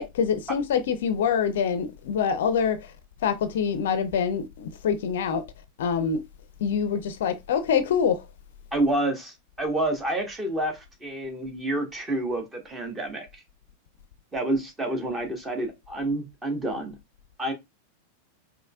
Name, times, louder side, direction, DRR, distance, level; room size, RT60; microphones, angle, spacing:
voice 1, 0.0-2.9 3.2-5.4 5.8-6.2 6.6-8.3, left 7 dB, 55° left, 0.5 m, -25 dB
voice 2, 8.7-13.4 14.3-16.9 17.4-17.5, right 1 dB, 15° right, 1.3 m, -28 dB
5.2 x 3.0 x 2.3 m
figure-of-eight pair, 90°, 0 cm